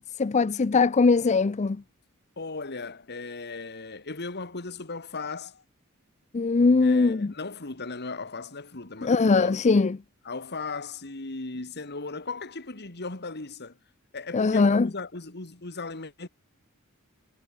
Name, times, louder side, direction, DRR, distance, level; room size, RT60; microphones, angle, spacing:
voice 1, 0.2-1.8 6.3-7.3 9.0-10.0 14.3-14.9, left 4 dB, 30° left, 0.4 m, -21 dB
voice 2, 2.4-5.6 6.8-9.6 10.3-13.8 14.1-16.3, left 3 dB, 50° left, 2.2 m, -37 dB
head